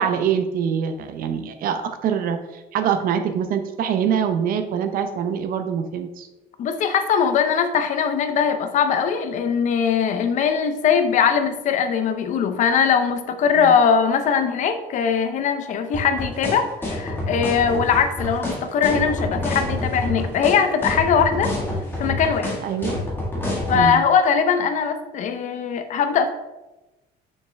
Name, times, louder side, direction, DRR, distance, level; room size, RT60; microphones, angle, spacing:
voice 1, 0.0-6.3 13.6-13.7 22.6-23.0 23.7-24.0, right 8 dB, 55° right, 8 dB, 0.7 m, -24 dB
voice 2, 6.6-21.5 22.0-22.6 23.7-26.3, left 7 dB, 45° left, 8 dB, 0.6 m, -21 dB
sound 1, 15.9-23.8, left 1 dB, 10° left, 1.6 m, -27 dB
6.5 x 5.7 x 3.3 m, 1.0 s
cardioid pair, 180°, 17 cm